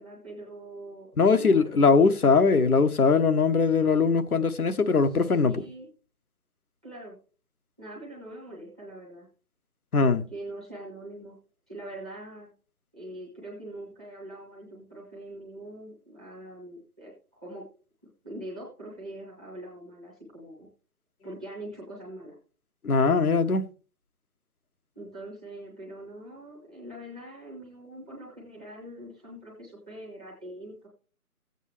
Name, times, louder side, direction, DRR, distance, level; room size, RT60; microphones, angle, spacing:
voice 1, 0.0-1.9 5.1-5.9 6.8-7.2 7.8-9.3 10.3-11.3 11.7-12.5 12.9-17.6 18.2-20.7 21.2-22.3 24.9-30.9, right 1 dB, 5° right, 0.7 m, -43 dB
voice 2, 1.2-5.6 9.9-10.2 22.8-23.6, left 4 dB, 80° left, 1.0 m, -21 dB
15.5 x 8.1 x 3.2 m
figure-of-eight pair, 150°, 44 cm